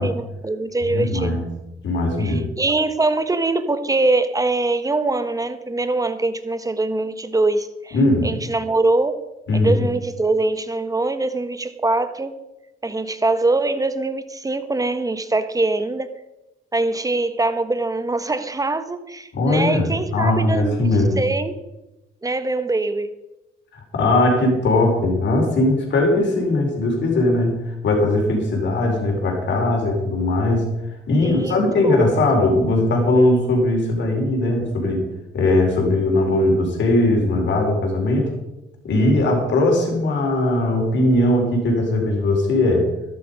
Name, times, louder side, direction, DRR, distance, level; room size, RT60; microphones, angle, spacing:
voice 1, 0.0-1.4 2.2-8.0 8.2-9.2 9.5-12.3 12.8-16.1 16.7-21.5 22.2-23.1 31.2-32.0, right 2 dB, 15° right, 10 dB, 1.3 m, -23 dB
voice 2, 0.9-1.4 1.8-2.5 7.9-8.3 9.5-9.8 19.3-21.2 23.9-30.7 31.1-35.1 35.3-38.3 38.8-42.9, left 2 dB, 65° left, 1 dB, 4.4 m, -19 dB
12.5 x 11.5 x 5.3 m, 0.95 s
cardioid pair, 90°, 20 cm